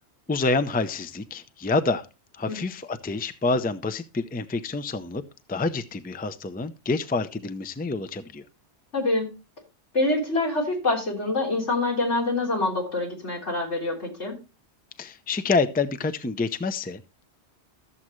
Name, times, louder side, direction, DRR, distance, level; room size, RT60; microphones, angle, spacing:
voice 1, 0.3-2.1 2.3-5.2 5.5-8.4 15.0-17.0, left 3 dB, 10° left, 10 dB, 0.4 m, -27 dB
voice 2, 8.9-9.3 9.9-14.4, left 2 dB, 90° left, -2 dB, 3.9 m, -25 dB
13.5 x 7.4 x 3.1 m, 0.30 s
omnidirectional pair, 1.1 m